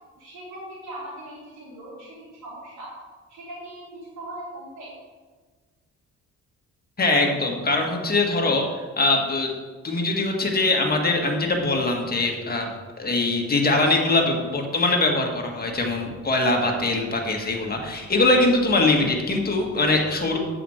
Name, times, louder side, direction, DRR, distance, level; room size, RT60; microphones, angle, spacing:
voice 1, 0.2-2.9 3.3-4.9, right 1 dB, 75° right, -7 dB, 2.6 m, -39 dB
voice 2, 7.0-8.6 9.0-9.5 9.8-12.7 13.0-20.4, left 2 dB, 30° left, 1 dB, 1.8 m, -22 dB
7.9 x 5.2 x 6.4 m, 1.4 s
cardioid pair, 90°, 30 cm